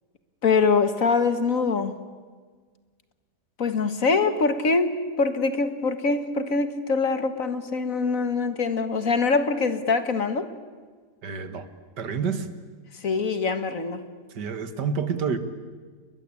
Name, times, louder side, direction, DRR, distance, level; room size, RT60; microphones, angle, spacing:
voice 1, 0.4-2.0 3.6-10.5 13.0-14.0, left 4 dB, 55° left, 10 dB, 2.0 m, -24 dB
voice 2, 11.2-11.7 12.0-12.5 14.3-15.4, right 6 dB, 85° right, 11 dB, 2.2 m, -28 dB
29.5 x 21.5 x 8.5 m, 1.5 s
omnidirectional pair, 1.8 m